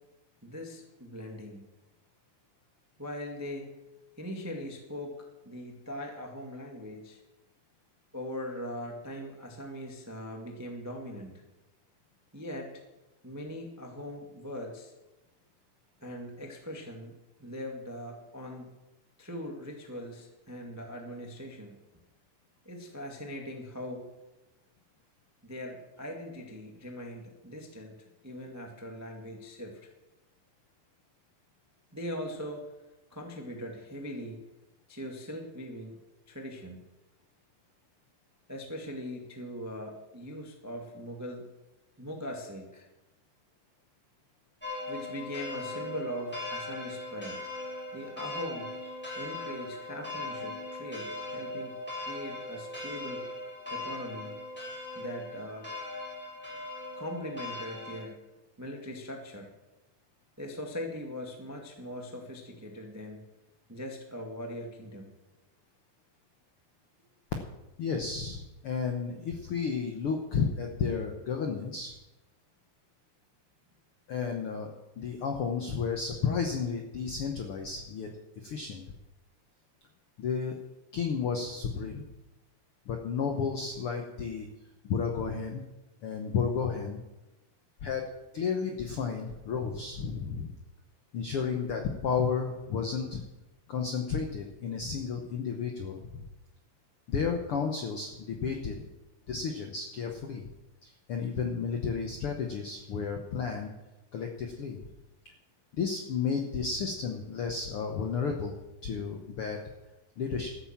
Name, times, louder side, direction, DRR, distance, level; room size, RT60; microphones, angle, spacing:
voice 1, 0.4-1.6 3.0-3.7 4.2-7.2 8.1-11.4 12.3-12.8 13.2-14.9 16.0-18.7 19.2-21.7 22.6-24.1 25.4-27.9 28.2-29.9 31.9-32.6 33.1-34.4 34.9-36.0 36.3-36.8 38.5-41.5 42.0-42.9 44.9-47.4 47.9-53.2 53.7-54.4 54.9-55.7 56.9-58.2 58.6-59.5 60.4-63.3 63.7-65.1, equal, 25° right, 2 dB, 0.4 m, -41 dB
sound 1, 44.6-58.0, left 2 dB, 5° left, 3.1 m, -39 dB
voice 2, 67.8-71.9 74.1-78.1 78.4-78.8 80.2-80.6 80.9-82.0 82.9-84.5 84.8-85.6 86.0-87.0 87.8-90.5 91.1-93.2 93.7-96.2 97.1-98.9 99.3-100.5 100.8-103.7 104.1-104.8 105.7-108.5 108.8-109.7 110.2-110.6, left 6 dB, 75° left, 3 dB, 1.3 m, -32 dB
13.0 x 8.8 x 7.3 m, 1.0 s
omnidirectional pair, 4.1 m